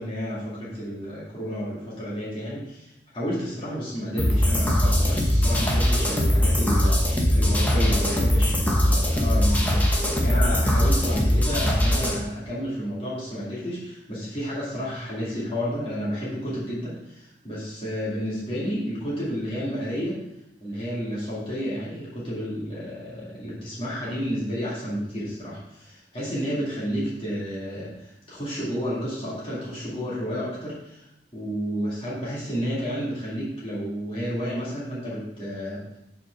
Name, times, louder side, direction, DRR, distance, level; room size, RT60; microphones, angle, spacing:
voice 1, 0.0-20.2 20.6-36.0, equal, 30° left, -8 dB, 2.2 m, -31 dB
sound 1, 4.2-12.2, equal, 10° left, 1.0 m, -21 dB
5.7 x 4.5 x 5.8 m, 0.87 s
head